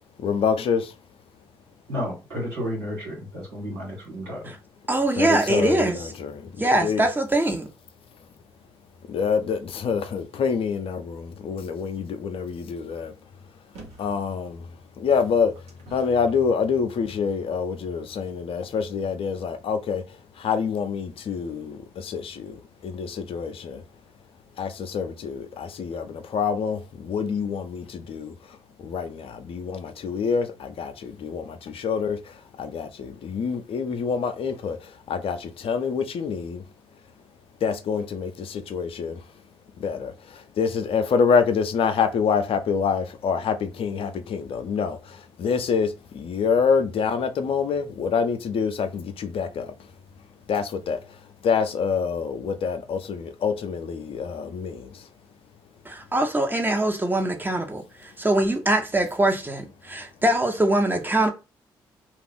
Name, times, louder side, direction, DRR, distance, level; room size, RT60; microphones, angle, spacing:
voice 1, 0.2-0.9 5.2-6.5 6.8-7.0 9.1-13.1 14.0-14.7 15.0-15.5 15.9-20.0 20.4-22.6 22.8-23.8 24.6-28.3 28.8-32.2 32.6-34.8 35.1-36.6 37.6-39.2 39.8-49.7 50.5-51.0 51.4-54.9, left 6 dB, 55° left, 0.5 m, -26 dB
voice 2, 1.9-4.5, equal, 90° right, 1.5 m, -32 dB
voice 3, 4.9-6.1 6.6-7.7 55.8-61.3, right 1 dB, 15° right, 0.9 m, -23 dB
sound 1, 13.7-14.2 15.0-16.4 17.1-17.2, right 2 dB, 70° right, 1.0 m, -47 dB
2.4 x 2.4 x 3.5 m
hypercardioid pair, 40°, 11 cm